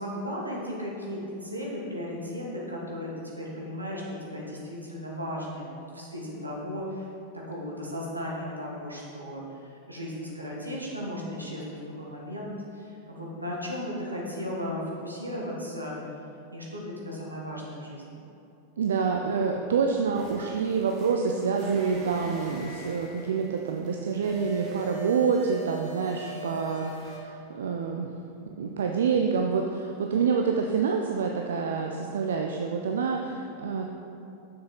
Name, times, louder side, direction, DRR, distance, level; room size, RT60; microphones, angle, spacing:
voice 1, 0.0-7.1 7.3-16.0 16.5-18.0, equal, 85° right, -3 dB, 1.4 m, -36 dB
voice 2, 18.8-28.1 28.6-33.8, right 5 dB, 65° right, 2 dB, 0.4 m, -27 dB
sound 1, 20.1-27.2, right 2 dB, 35° right, 1.5 m, -42 dB
7.1 x 6.2 x 4.0 m, 2.7 s
figure-of-eight pair, 90°, 0 cm